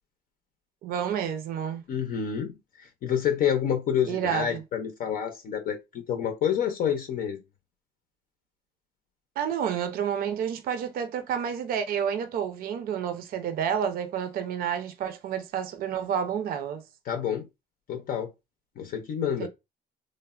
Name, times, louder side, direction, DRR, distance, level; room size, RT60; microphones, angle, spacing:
voice 1, 0.8-1.8 4.1-4.6 9.4-16.8 19.4-19.5, right 8 dB, 60° right, 0.5 m, -29 dB
voice 2, 1.9-5.8 6.1-7.4 17.1-17.5 17.9-18.3 18.8-19.5, left 8 dB, 55° left, 0.5 m, -28 dB
3.3 x 2.0 x 2.3 m
cardioid pair, 110°, 17 cm